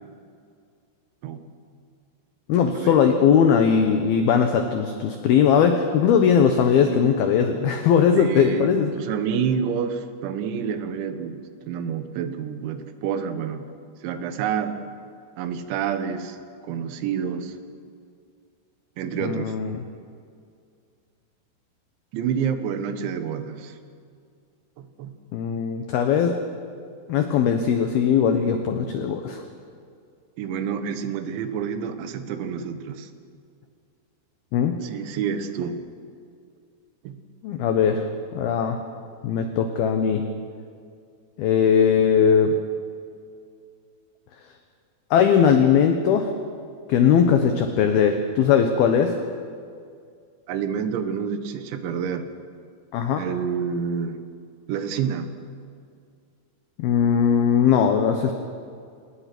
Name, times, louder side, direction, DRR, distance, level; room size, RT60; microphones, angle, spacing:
voice 1, 2.5-8.9 19.2-19.8 25.3-26.3 27.1-29.4 34.5-34.8 37.4-38.0 38.3-38.8 39.2-40.2 41.4-42.5 45.1-46.3 46.9-49.1 52.9-53.2 56.8-58.3, left 7 dB, 70° left, 6 dB, 2.5 m, -19 dB
voice 2, 8.1-13.7 14.0-14.8 15.4-16.4 16.6-17.6 19.0-19.6 22.1-23.8 24.8-25.2 30.4-33.1 34.8-35.9 37.0-37.3 50.5-52.3 53.1-54.2 54.7-55.4, right 7 dB, 75° right, 9 dB, 3.5 m, -28 dB
28.5 x 19.5 x 6.1 m, 2.3 s
omnidirectional pair, 5.6 m